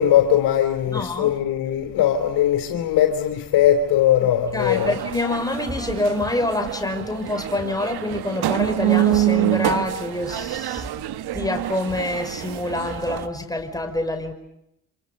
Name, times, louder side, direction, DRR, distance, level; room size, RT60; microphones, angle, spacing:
voice 1, 0.0-4.9, left 10 dB, 75° left, 3.8 m, -20 dB
voice 2, 0.9-1.4 4.2-10.9 11.3-14.3, left 2 dB, 10° left, 5.4 m, -26 dB
sound 1, 4.6-13.3, right 14 dB, 70° right, 1.2 m, -26 dB
28.0 x 27.0 x 6.9 m
supercardioid pair, 60°, 40 cm